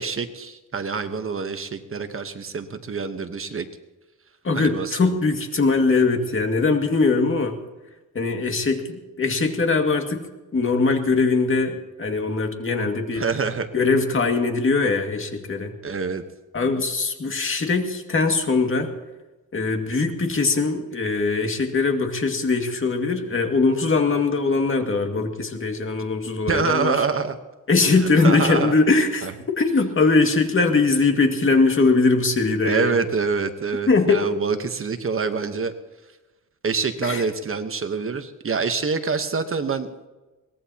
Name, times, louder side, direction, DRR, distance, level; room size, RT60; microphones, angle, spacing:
voice 1, 0.0-3.7 4.5-5.2 13.1-13.7 15.8-16.2 26.5-27.4 28.0-28.7 29.2-29.3 32.6-35.7 36.6-39.9, right 5 dB, 40° right, 8 dB, 1.1 m, -26 dB
voice 2, 4.4-7.5 8.1-10.2 10.5-13.2 13.7-15.7 16.5-18.9 19.5-27.1 27.7-29.3 29.6-33.0 33.9-34.2 37.0-37.2, left 3 dB, 40° left, 4 dB, 2.1 m, -21 dB
22.5 x 19.0 x 2.9 m, 1.1 s
wide cardioid pair, 130°, 33 cm